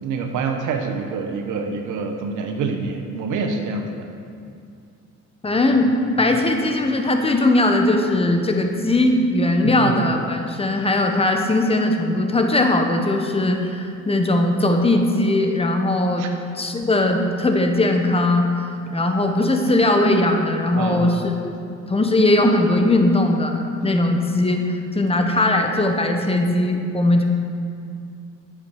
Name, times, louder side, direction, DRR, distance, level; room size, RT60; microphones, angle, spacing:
voice 1, 0.0-4.1 9.6-10.0 16.2-16.3 20.8-21.2, right 4 dB, 85° right, 4 dB, 0.9 m, -26 dB
voice 2, 5.4-5.9 6.2-16.3 16.5-18.5 18.9-21.3 21.9-27.2, left 2 dB, 20° left, 4 dB, 1.1 m, -19 dB
10.0 x 7.4 x 4.8 m, 2.4 s
cardioid pair, 90°, 30 cm